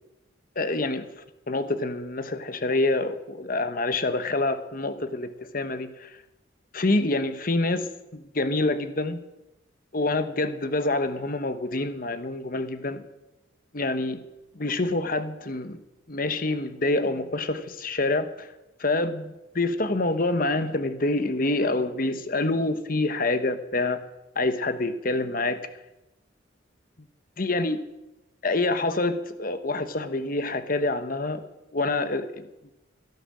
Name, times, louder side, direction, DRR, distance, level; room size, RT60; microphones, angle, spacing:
voice 1, 0.6-1.1 1.5-6.1 6.7-9.2 9.9-13.0 13.7-14.2 14.5-15.8 16.1-18.5 18.8-24.0 24.3-25.6 27.4-27.8 28.4-31.4 31.7-32.4, left 2 dB, 45° left, 10 dB, 1.2 m, -26 dB
17.0 x 11.0 x 7.6 m, 0.97 s
head